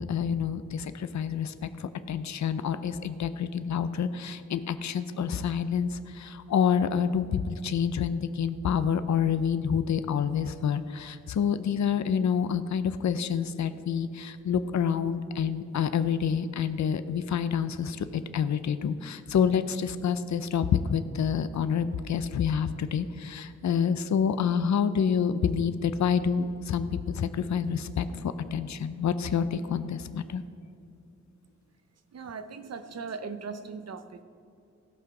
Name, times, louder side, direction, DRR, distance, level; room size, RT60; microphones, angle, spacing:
voice 1, 0.0-30.4, left 7 dB, 75° left, 12 dB, 0.5 m, -28 dB
voice 2, 32.1-34.2, right 5 dB, 60° right, 10 dB, 0.7 m, -39 dB
16.5 x 5.8 x 4.8 m, 2.5 s
wide cardioid pair, 130°, 29 cm